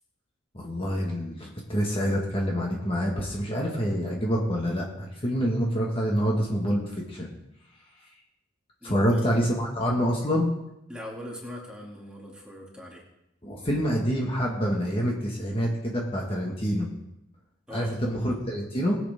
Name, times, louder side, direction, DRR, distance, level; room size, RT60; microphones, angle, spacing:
voice 1, 0.5-7.3 8.8-10.5 13.4-16.9 17.7-19.0, equal, 30° left, -2 dB, 1.7 m, -27 dB
voice 2, 8.8-9.4 10.9-13.0 17.7-18.0, equal, 5° right, -3 dB, 2.5 m, -41 dB
20.5 x 8.1 x 3.6 m, 0.88 s
head